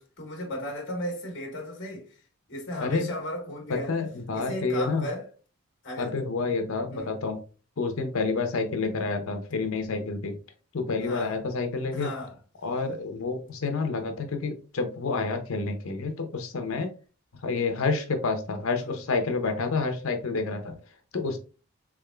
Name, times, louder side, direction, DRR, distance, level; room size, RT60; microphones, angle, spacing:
voice 1, 0.0-2.2 2.5-4.0 4.3-5.3 5.8-6.2 6.9-7.2 11.0-11.4 11.9-12.3 18.8-18.9, left 1 dB, 55° left, 1.3 m, -36 dB
voice 2, 2.8-3.1 3.7-5.1 6.0-7.4 7.8-10.4 10.7-12.1 12.6-16.9 17.4-20.7 21.1-21.4, left 4 dB, 75° left, 0.7 m, -29 dB
3.6 x 3.5 x 2.2 m
head